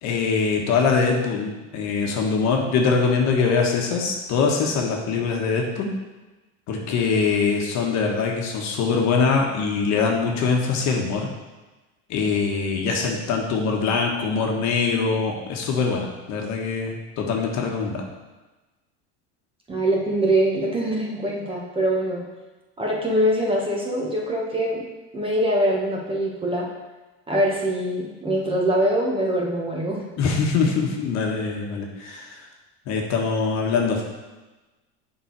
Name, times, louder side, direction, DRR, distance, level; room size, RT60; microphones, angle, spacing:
voice 1, 0.0-5.9 6.7-11.3 12.1-18.0 30.2-32.3 32.9-34.0, left 5 dB, 55° left, 1 dB, 1.5 m, -23 dB
voice 2, 19.7-22.2 22.8-24.8 25.1-26.7 27.3-30.1, right 1 dB, 15° right, -2 dB, 1.5 m, -23 dB
7.1 x 5.3 x 4.8 m, 1.2 s
supercardioid pair, 125°, 33 cm